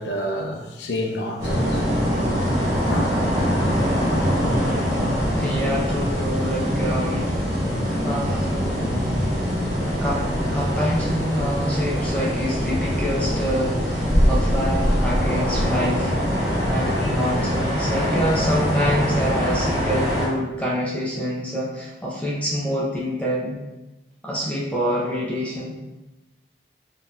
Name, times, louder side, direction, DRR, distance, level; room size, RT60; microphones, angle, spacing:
voice 1, 0.0-2.0 2.3-3.2, equal, 85° left, 2 dB, 0.5 m, -29 dB
sound 1, 1.4-20.3, equal, 20° right, 1.3 m, -23 dB
voice 2, 5.4-7.3 8.0-8.9 9.9-10.3 10.5-16.1 16.6-23.6 24.2-25.8, equal, 10° left, -5 dB, 0.5 m, -26 dB
sound 2, 8.4-20.3, equal, 75° right, 1.1 m, -39 dB
3.7 x 2.7 x 2.3 m, 1.0 s
head